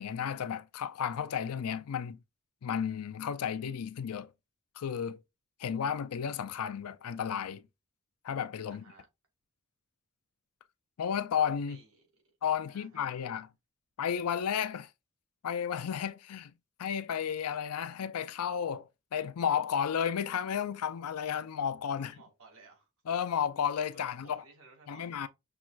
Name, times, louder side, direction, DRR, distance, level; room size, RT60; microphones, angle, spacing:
voice 1, 0.0-2.2 2.6-4.3 4.8-5.2 5.6-7.6 8.2-8.8 11.0-11.8 12.4-13.5 14.0-14.9 15.4-16.5 16.8-22.1 23.1-24.4 24.9-25.3, left 8 dB, 90° left, 0.4 m, -33 dB
voice 2, 8.7-9.1 11.7-12.1 12.7-13.4 22.0-22.9 23.9-25.3, right 3 dB, 75° right, 2.0 m, -57 dB
5.9 x 3.0 x 2.3 m
head